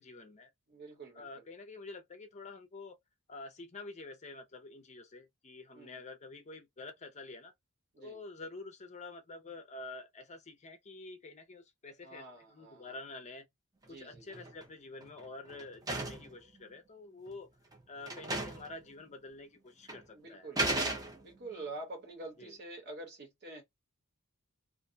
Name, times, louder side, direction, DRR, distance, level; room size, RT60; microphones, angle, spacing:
voice 1, 0.0-0.5 1.1-3.0 3.3-7.5 8.0-13.5 13.9-17.5 17.9-20.5 22.4-22.5, left 3 dB, 30° left, 0.5 m, -48 dB
voice 2, 0.7-1.5 5.7-6.0 7.9-8.2 12.0-13.0 13.9-14.3 20.1-20.7 21.2-23.6, right 2 dB, 50° right, 1.2 m, -47 dB
sound 1, 14.1-14.6 15.0-16.3 17.3-17.4 17.7-17.8 18.1-18.7 19.0-19.1 19.9-20.0 20.6-21.5, right 2 dB, 15° right, 0.5 m, -35 dB
2.5 x 2.1 x 2.6 m
head